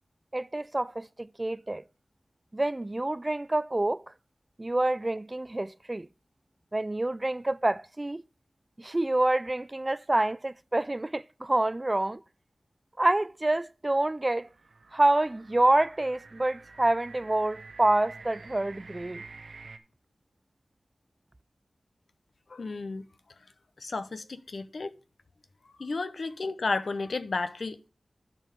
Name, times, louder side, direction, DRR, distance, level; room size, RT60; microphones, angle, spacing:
voice 1, 0.3-1.8 2.5-4.0 4.6-6.1 6.7-8.2 8.8-12.2 13.0-14.5 14.9-19.2, right 2 dB, 30° right, 0.3 m, -27 dB
sound 1, 14.2-19.8, right 4 dB, 75° right, 0.8 m, -49 dB
voice 2, 22.5-23.1 23.8-24.9 25.8-27.9, left 3 dB, 75° left, 0.7 m, -33 dB
10.5 x 4.6 x 5.2 m
wide cardioid pair, 60°, 0 cm